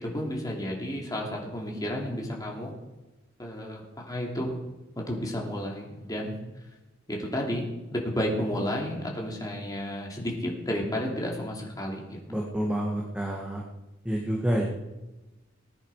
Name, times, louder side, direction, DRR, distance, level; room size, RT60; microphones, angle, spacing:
voice 1, 0.0-2.7 3.4-4.5 5.0-6.4 7.1-7.6 7.9-12.2, equal, 20° left, -1 dB, 3.0 m, -32 dB
voice 2, 12.3-13.6 14.0-14.6, right 1 dB, 5° right, -2 dB, 1.7 m, -28 dB
19.5 x 9.9 x 4.9 m, 1.1 s
head